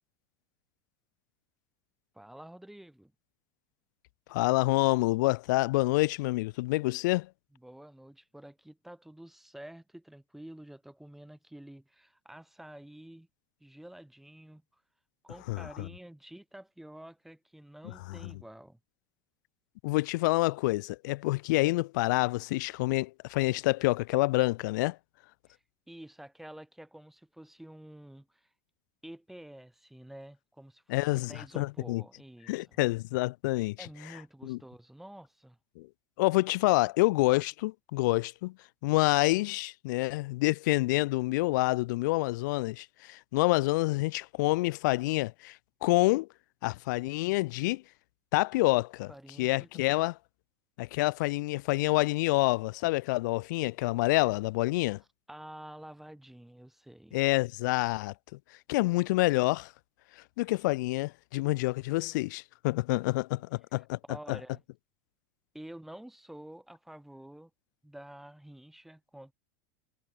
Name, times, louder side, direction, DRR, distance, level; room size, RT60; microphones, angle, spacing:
voice 1, 2.1-3.1 7.5-13.3 13.6-14.8 15.2-18.8 25.5-28.5 29.0-32.8 33.8-35.6 49.1-50.0 55.0-57.2 63.8-64.6 65.5-67.5 67.8-69.3, right 1 dB, ahead, 3.9 m, -49 dB
voice 2, 4.3-7.3 15.5-15.7 19.8-25.0 30.9-32.0 32.5-33.8 34.4-34.6 35.8-35.9 36.2-38.5 38.8-45.6 45.8-46.3 46.6-47.8 48.3-49.1 49.4-50.1 50.8-55.0 57.1-58.1 58.7-59.7 60.4-64.0 64.3-64.4, left 21 dB, 75° left, 0.9 m, -27 dB
supercardioid pair, 145°, 10 cm